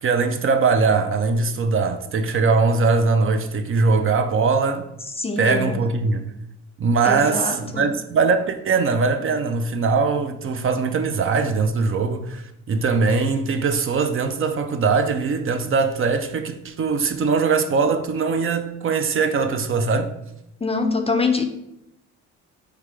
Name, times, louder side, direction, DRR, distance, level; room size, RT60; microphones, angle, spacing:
voice 1, 0.0-4.9 5.4-6.3 6.8-20.1, right 4 dB, 45° right, 0.5 m, -21 dB
voice 2, 5.2-5.8 7.1-7.9 20.6-21.4, left 3 dB, 20° left, 0.4 m, -24 dB
3.4 x 3.3 x 4.7 m
cardioid pair, 90°, 30 cm